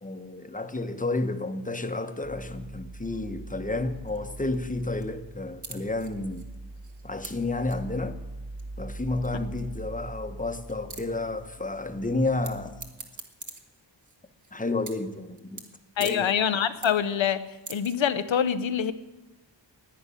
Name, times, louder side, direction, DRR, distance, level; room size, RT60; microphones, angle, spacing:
voice 1, 0.0-6.5 7.0-8.2 8.8-12.8 14.5-15.6 16.0-16.3, left 2 dB, 15° left, 1.0 m, -31 dB
sound 1, 2.2-12.9, right 2 dB, 20° right, 0.5 m, -43 dB
sound 2, 4.1-4.6 4.8-5.0 5.3-5.4 5.6-7.3 7.7-7.8 8.6-8.7 9.2-9.3 9.6-9.7 9.9-10.0 10.4-10.5 10.7-11.0 12.4-12.5 12.8-14.5 14.8-15.1 15.4-15.7 16.0-16.2 16.5-17.1 17.4-17.9, right 3 dB, 40° right, 1.6 m, -41 dB
voice 2, 16.0-17.4 17.7-18.9, left 8 dB, 85° left, 0.8 m, -25 dB
11.0 x 9.6 x 9.8 m
wide cardioid pair, 85°, 45 cm